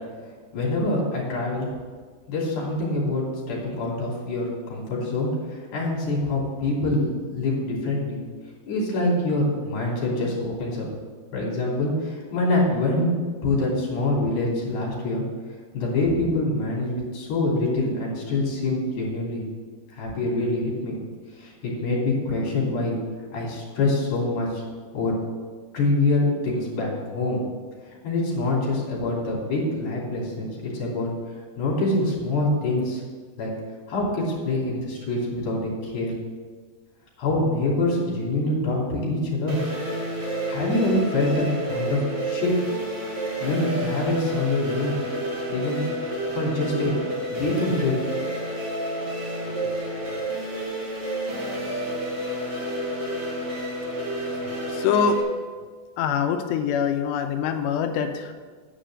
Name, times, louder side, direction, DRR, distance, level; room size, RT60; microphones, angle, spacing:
voice 1, 0.5-1.7 2.3-8.2 8.7-10.9 11.3-13.1 13.4-15.2 15.7-19.5 19.9-21.0 21.4-22.9 23.3-24.6 24.9-25.1 25.7-27.4 28.0-31.1 31.6-33.0 33.4-33.5 33.9-36.1 37.2-39.6 40.5-42.5 43.4-45.0 45.5-45.9 46.3-47.0 47.3-48.0 49.5-49.6, left 2 dB, 50° left, -4 dB, 4.0 m, -25 dB
sound 1, 39.5-55.2, right 1 dB, 65° right, 0.8 m, -30 dB
voice 2, 54.7-55.2 56.0-58.3, left 7 dB, 85° left, 6 dB, 2.7 m, -24 dB
10.0 x 5.1 x 7.7 m, 1.5 s
omnidirectional pair, 5.0 m